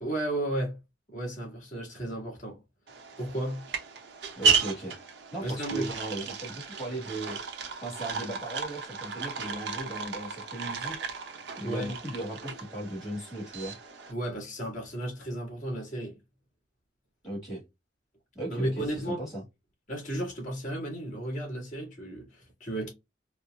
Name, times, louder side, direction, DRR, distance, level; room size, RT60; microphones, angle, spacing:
voice 1, 0.0-0.8 1.1-2.6 3.2-3.6 5.4-5.9 11.6-11.9 14.1-16.2 18.5-19.2 19.9-22.9, right 1 dB, 40° left, 1.7 m, -34 dB
sound 1, 2.9-14.1, right 5 dB, 70° right, 0.7 m, -33 dB
voice 2, 4.3-4.9 5.3-7.4 7.8-11.1 11.6-13.8 17.2-17.6 18.3-19.4, right 1 dB, 15° left, 1.5 m, -37 dB
4.3 x 2.0 x 2.2 m
head